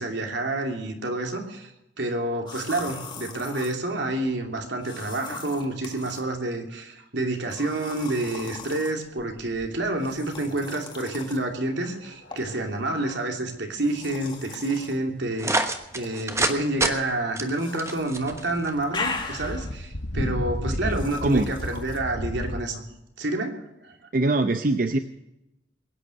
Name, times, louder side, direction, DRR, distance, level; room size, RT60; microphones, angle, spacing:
voice 1, 0.0-22.8 23.2-24.0, right 2 dB, 80° right, 3 dB, 2.8 m, -29 dB
sound 1, 2.5-3.8 4.8-6.2 7.5-8.9 10.0-11.4 12.3-12.6 13.8-15.0 15.9-16.5 17.5-18.0 18.3-19.8 20.9-22.0, left 4 dB, 25° left, 1.8 m, -38 dB
sound 2, 9.2-9.9 10.2-10.3 11.8-12.4 13.0-13.2 13.8-13.9 14.3-14.4 15.3-15.4 15.8-15.9 17.8-17.9 18.2-22.6, left 1 dB, 80° left, 1.5 m, -33 dB
sound 3, 15.4-16.6 16.8-16.9 17.4-18.7, right 2 dB, 15° right, 1.1 m, -25 dB
voice 2, 20.8-21.5 24.1-25.0, right 2 dB, 50° right, 9 dB, 0.7 m, -23 dB
21.5 x 9.7 x 6.5 m, 0.86 s
head